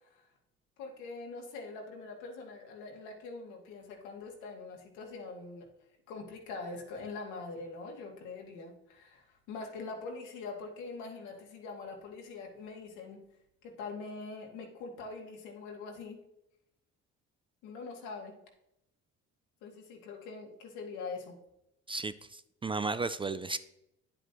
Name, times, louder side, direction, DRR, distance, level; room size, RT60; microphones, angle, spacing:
voice 1, 0.8-5.7 6.1-13.2 13.6-16.2 17.6-18.4 19.6-21.3, left 4 dB, 80° left, 1 dB, 2.2 m, -43 dB
voice 2, 21.9-23.6, right 3 dB, 20° right, 13 dB, 0.3 m, -34 dB
9.7 x 7.9 x 3.0 m, 0.84 s
supercardioid pair, 90°, 29 cm